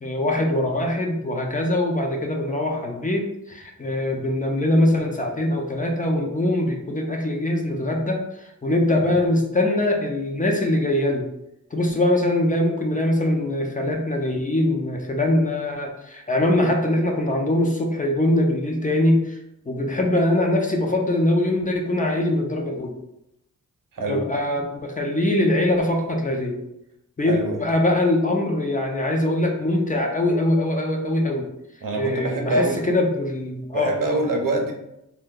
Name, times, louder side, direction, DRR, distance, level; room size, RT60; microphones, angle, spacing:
voice 1, 0.0-11.3 11.7-19.4 19.7-22.9 24.1-26.6 27.2-31.5 32.0-34.2, left 1 dB, 25° left, 1 dB, 0.5 m, -22 dB
voice 2, 23.9-24.2 27.3-27.6 31.8-32.8 33.7-34.7, right 2 dB, 80° right, 3 dB, 0.6 m, -25 dB
2.7 x 2.2 x 3.6 m, 0.83 s
wide cardioid pair, 100°, 32 cm